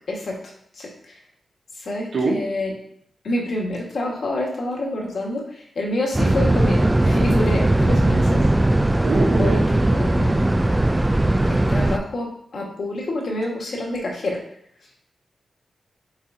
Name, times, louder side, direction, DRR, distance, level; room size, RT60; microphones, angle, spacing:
voice 1, 0.1-0.4 0.7-1.1 1.8-2.7 3.2-8.4 9.4-10.4 11.5-14.4, left 1 dB, 55° left, -1 dB, 1.6 m, -28 dB
voice 2, 2.1-2.4 9.0-10.0, right 3 dB, 60° right, -1 dB, 1.5 m, -24 dB
sound 1, 6.1-12.0, right 1 dB, 10° right, 0.3 m, -18 dB
8.9 x 4.6 x 2.8 m, 0.68 s
wide cardioid pair, 155°, 0 cm